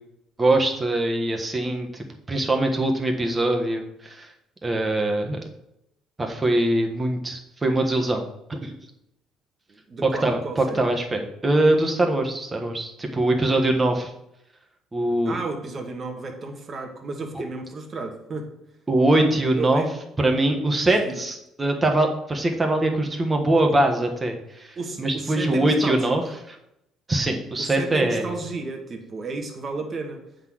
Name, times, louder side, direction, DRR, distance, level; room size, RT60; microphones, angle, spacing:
voice 1, 0.4-4.3 4.6-5.4 6.2-8.2 8.5-8.7 10.0-14.1 14.9-15.4 17.3-17.4 18.9-19.9 20.2-26.2 26.5-26.6 27.1-28.4, right 1 dB, 20° right, 3 dB, 1.4 m, -22 dB
voice 2, 9.9-10.9 15.2-18.5 19.6-19.9 21.0-21.2 24.8-26.1 27.6-30.2, right 3 dB, 35° right, 3 dB, 1.6 m, -32 dB
7.8 x 4.0 x 6.3 m, 0.82 s
cardioid pair, 105°, 0 cm